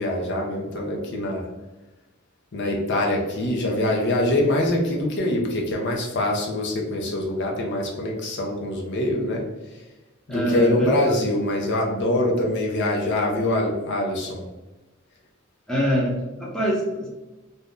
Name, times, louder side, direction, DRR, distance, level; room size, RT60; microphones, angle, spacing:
voice 1, 0.0-1.5 2.5-9.4 10.3-14.5, left 1 dB, 55° left, 0 dB, 0.6 m, -24 dB
voice 2, 10.3-10.9 15.7-17.1, equal, 5° left, -5 dB, 0.6 m, -24 dB
2.6 x 2.2 x 3.5 m, 1.1 s
head